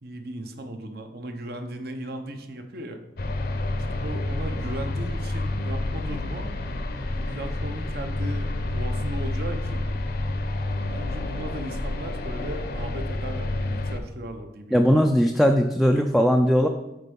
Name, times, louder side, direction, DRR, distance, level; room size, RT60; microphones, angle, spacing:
voice 1, 0.0-3.0 3.9-6.5 7.1-9.8 10.9-15.0, right 1 dB, 60° right, 6 dB, 0.8 m, -37 dB
sound 1, 3.2-14.0, left 2 dB, 55° left, 0.7 m, -29 dB
voice 2, 14.7-16.7, equal, ahead, 3 dB, 0.3 m, -19 dB
8.1 x 4.4 x 5.3 m, 0.98 s
head